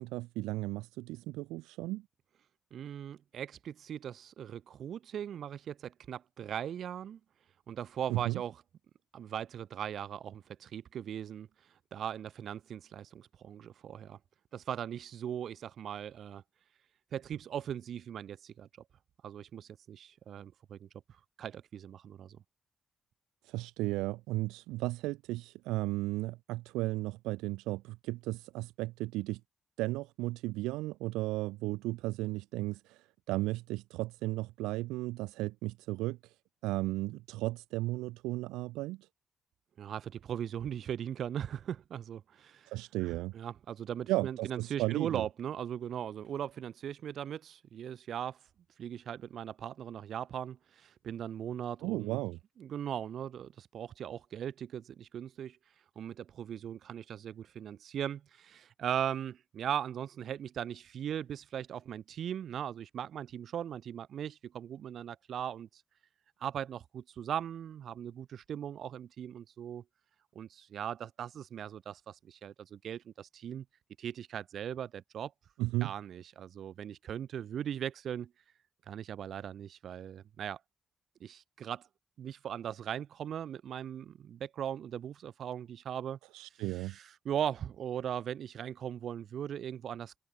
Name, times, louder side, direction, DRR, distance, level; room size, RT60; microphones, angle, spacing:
voice 1, 0.0-2.1 8.1-8.4 23.4-29.4 29.8-36.3 36.6-39.1 42.7-43.3 44.1-45.2 51.8-52.4 75.6-75.9 86.3-87.0, right 19 dB, 90° right, 0.6 m, -35 dB
voice 2, 2.7-7.2 7.7-8.6 9.1-11.5 11.9-14.2 14.5-16.4 17.1-18.7 19.2-20.9 21.4-22.4 39.8-42.7 43.3-48.4 48.8-52.2 52.6-55.6 55.9-65.8 66.4-69.8 70.3-73.6 74.0-75.3 75.8-78.3 78.9-80.6 81.2-81.9 82.2-86.2 86.7-90.2, right 9 dB, 70° right, 1.4 m, -39 dB
open air
supercardioid pair, 50°, 0 cm